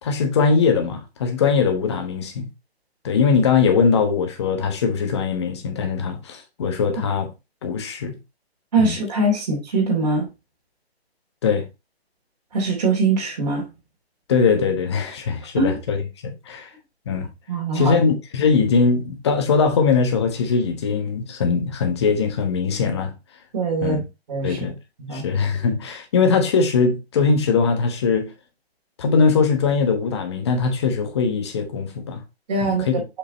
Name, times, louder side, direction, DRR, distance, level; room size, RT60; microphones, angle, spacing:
voice 1, 0.0-2.5 3.0-7.3 7.6-8.2 8.8-8.9 11.4-11.6 14.3-16.0 16.2-16.7 17.1-17.3 17.7-23.1 23.8-24.0 24.4-24.7 25.1-28.3 29.0-32.2 32.6-33.0, left 5 dB, 25° left, 1.2 m, -21 dB
voice 2, 8.7-10.3 12.5-13.7 15.5-15.8 17.5-18.0 23.5-24.0 24.3-24.6 25.0-25.2 32.5-32.9, right 3 dB, 40° right, 2.7 m, -22 dB
6.7 x 5.7 x 2.8 m
hypercardioid pair, 165°, 32 cm